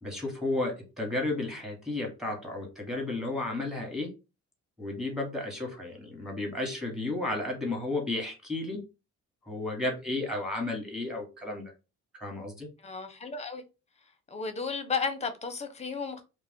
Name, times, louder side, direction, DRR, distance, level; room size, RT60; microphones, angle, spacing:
voice 1, 0.0-4.1 4.8-8.8 9.5-11.7 12.2-12.7, left 2 dB, ahead, 1.2 m, -33 dB
voice 2, 12.8-13.6 14.3-16.2, left 5 dB, 20° left, 0.7 m, -33 dB
2.4 x 2.1 x 3.5 m
cardioid pair, 90°, 30 cm